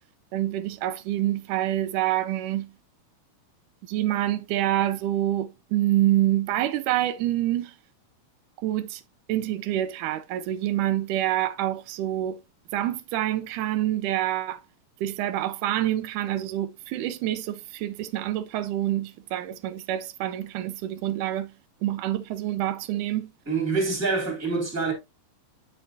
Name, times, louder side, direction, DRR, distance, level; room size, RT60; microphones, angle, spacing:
voice 1, 0.3-2.7 3.9-7.8 8.6-9.0 9.3-12.4 12.7-14.6 15.0-21.5 21.8-23.3, right 13 dB, 80° right, 2.1 m, -27 dB
voice 2, 23.5-24.9, right 4 dB, 5° right, 2.6 m, -26 dB
8.7 x 5.6 x 2.7 m
omnidirectional pair, 3.6 m